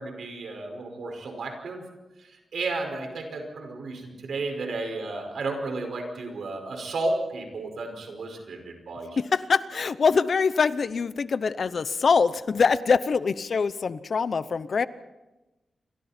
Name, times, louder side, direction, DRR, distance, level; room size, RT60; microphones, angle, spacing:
voice 1, 0.0-1.8 2.2-9.2, right 2 dB, 80° right, 4 dB, 5.3 m, -33 dB
voice 2, 9.2-14.9, left 5 dB, 55° left, 14 dB, 0.8 m, -24 dB
28.5 x 25.5 x 4.4 m, 1.1 s
wide cardioid pair, 155°, 0 cm